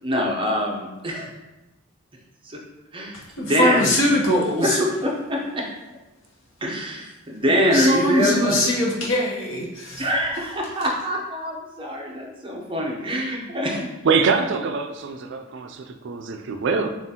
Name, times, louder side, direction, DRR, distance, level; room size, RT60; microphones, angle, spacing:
voice 1, 0.0-1.3 2.4-2.6 2.9-3.8 4.6-5.6 6.6-8.6 10.0-13.9, equal, 25° right, -1 dB, 0.7 m, -24 dB
voice 2, 3.1-4.8 7.7-10.1, left 1 dB, 70° left, -2 dB, 0.9 m, -22 dB
voice 3, 14.0-16.9, right 5 dB, 60° right, 6 dB, 0.3 m, -24 dB
6.9 x 2.4 x 2.8 m, 1.0 s
head